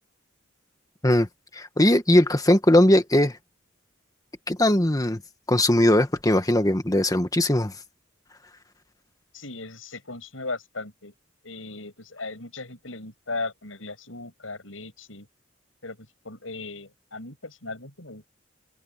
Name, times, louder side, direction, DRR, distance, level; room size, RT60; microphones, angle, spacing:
voice 1, 1.5-3.4 4.5-5.2 5.5-7.7, left 1 dB, 20° left, 1.5 m, -19 dB
voice 2, 9.3-11.1 11.4-15.3 15.8-18.3, left 3 dB, 85° left, 7.7 m, -37 dB
head